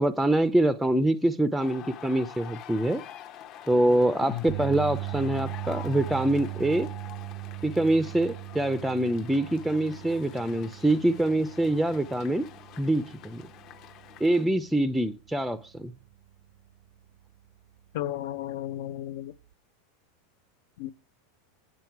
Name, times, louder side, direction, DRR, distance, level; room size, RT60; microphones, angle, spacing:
voice 1, 0.0-3.0 3.7-6.9 7.6-12.5 12.8-13.4 14.2-15.9, right 1 dB, ahead, 0.4 m, -25 dB
sound 1, 1.6-14.5, left 10 dB, 40° left, 0.8 m, -46 dB
sound 2, 4.5-16.7 17.1-17.3 19.5-19.6, right 25 dB, 65° right, 0.4 m, -39 dB
voice 2, 17.9-19.3 20.8-20.9, left 13 dB, 65° left, 0.5 m, -33 dB
8.6 x 7.6 x 4.6 m
supercardioid pair, 145°, 0 cm